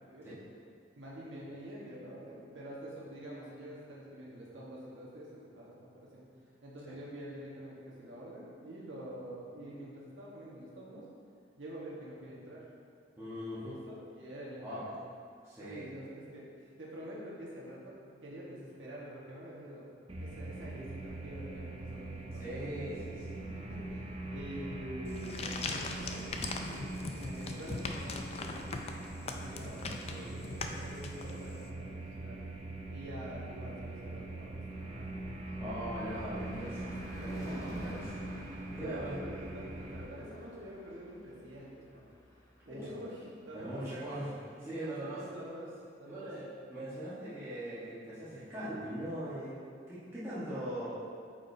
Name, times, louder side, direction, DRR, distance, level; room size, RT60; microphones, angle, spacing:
voice 1, 1.0-6.2 6.6-11.0 11.6-12.7 13.5-14.9 15.6-16.5 16.8-19.9 20.2-22.6 23.4-26.3 26.7-26.9 27.1-32.4 32.9-35.1 35.5-35.8 37.2-38.0 38.8-42.1 42.6-43.8 44.8-46.4, right 1 dB, 85° right, -6 dB, 1.4 m, -47 dB
voice 2, 13.2-13.8 14.6-14.9 15.4-15.9 22.4-23.4 30.1-30.4 35.6-38.1 38.7-39.1 42.7-42.9 43.5-45.3 46.0-49.6 49.9-50.9, right 1 dB, 15° right, -12 dB, 1.3 m, -41 dB
sound 1, 20.1-40.1, right 2 dB, 30° right, 0.5 m, -42 dB
sound 2, 25.1-31.6, left 3 dB, 35° left, 0.4 m, -40 dB
Car passing by / Truck / Engine, 34.2-43.7, left 1 dB, 20° left, 0.7 m, -50 dB
8.5 x 5.1 x 2.8 m, 2.2 s
head